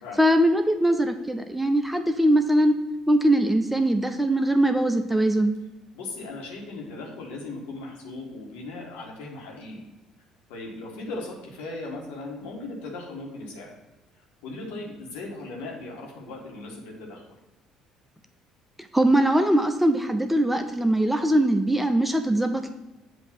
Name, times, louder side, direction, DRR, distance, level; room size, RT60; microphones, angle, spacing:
voice 1, 0.2-2.7 3.1-5.5 18.9-22.7, right 1 dB, 5° right, 6 dB, 0.6 m, -21 dB
voice 2, 5.9-9.9 10.5-13.7 14.4-17.2, left 2 dB, 75° left, -1 dB, 1.5 m, -38 dB
7.8 x 2.9 x 5.8 m, 1.0 s
hypercardioid pair, 60°, 2 cm